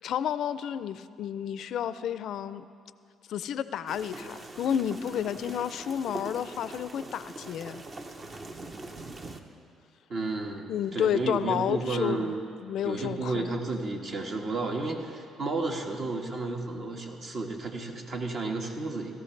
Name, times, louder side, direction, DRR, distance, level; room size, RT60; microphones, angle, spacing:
voice 1, 0.0-2.6 3.3-7.8 10.7-12.3 12.6-13.5, left 9 dB, 70° left, 14 dB, 0.4 m, -31 dB
sound 1, 3.9-9.4, right 2 dB, 40° right, 0.9 m, -42 dB
voice 2, 10.1-12.4 12.8-19.1, right 3 dB, 55° right, 1 dB, 1.6 m, -32 dB
18.0 x 13.5 x 3.3 m, 2.3 s
supercardioid pair, 75°, 0 cm